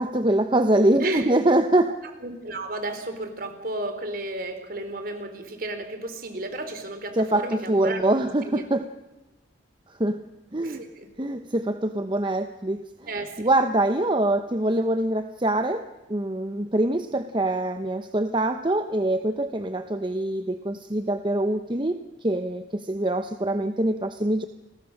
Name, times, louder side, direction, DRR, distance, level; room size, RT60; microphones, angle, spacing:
voice 1, 0.0-1.9 7.1-8.9 10.0-10.2 10.5-10.8 11.2-12.8 13.4-24.4, right 1 dB, 25° right, 8 dB, 0.9 m, -24 dB
voice 2, 1.0-1.3 2.2-8.6 10.6-11.1 13.1-13.3, right 2 dB, 55° right, 8 dB, 3.8 m, -33 dB
30.0 x 21.0 x 6.6 m, 1.0 s
head